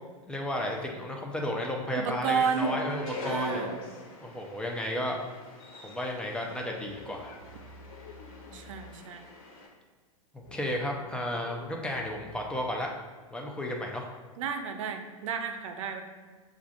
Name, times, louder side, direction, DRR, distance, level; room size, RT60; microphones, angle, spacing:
voice 1, 0.3-3.6 4.2-5.2 5.8-7.3 10.5-12.9 13.3-14.1, left 1 dB, 5° left, 0 dB, 0.6 m, -33 dB
voice 2, 2.0-2.7 3.2-3.8 8.5-9.3 14.4-16.0, right 6 dB, 60° right, 6 dB, 0.6 m, -31 dB
sound 1, 2.3-9.7, left 1 dB, 45° left, 1.3 m, -43 dB
sound 2, 6.8-9.0 10.4-12.8, left 2 dB, 75° left, 0.6 m, -51 dB
6.8 x 2.5 x 2.5 m, 1.4 s
hypercardioid pair, 110°, 18 cm